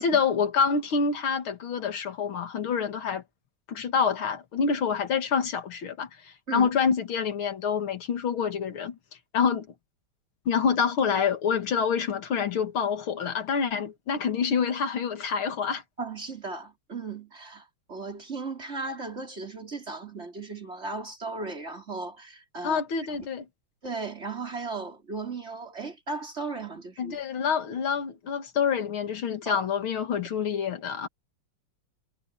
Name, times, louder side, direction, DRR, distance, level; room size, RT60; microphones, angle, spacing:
voice 1, 0.0-3.2 3.7-9.0 9.3-9.7 10.5-15.8 22.6-23.4 27.0-31.1, left 6 dB, 80° left, 2.7 m, -27 dB
voice 2, 16.0-22.8 23.1-23.2 23.8-27.1 29.5-29.6, right 4 dB, 30° right, 4.3 m, -36 dB
omnidirectional pair, 2.3 m